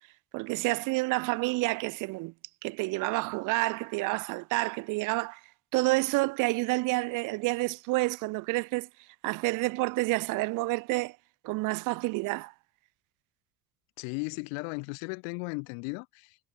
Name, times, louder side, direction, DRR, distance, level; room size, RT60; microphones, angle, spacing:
voice 1, 0.3-2.3 2.6-5.4 5.7-8.9 9.2-11.2 11.4-12.5, right 24 dB, 60° right, 0.4 m, -29 dB
voice 2, 14.0-16.4, left 40 dB or more, 85° left, 0.6 m, -36 dB
cardioid pair, 110°, 35 cm